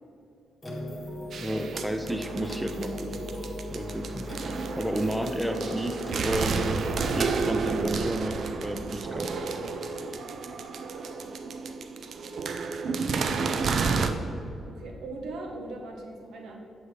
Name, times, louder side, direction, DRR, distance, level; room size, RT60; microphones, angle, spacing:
sound 1, 0.6-7.9, left 1 dB, 15° left, 1.5 m, -39 dB
voice 1, 1.3-3.3 3.7-9.3, right 1 dB, 5° right, 6 dB, 0.5 m, -32 dB
sound 2, 1.3-14.1, right 4 dB, 60° right, 0.5 m, -31 dB
voice 2, 5.5-5.8 14.7-16.6, right 2 dB, 80° right, 2 dB, 1.1 m, -40 dB
7.9 x 7.6 x 3.3 m, 2.7 s
cardioid pair, 100°, 0 cm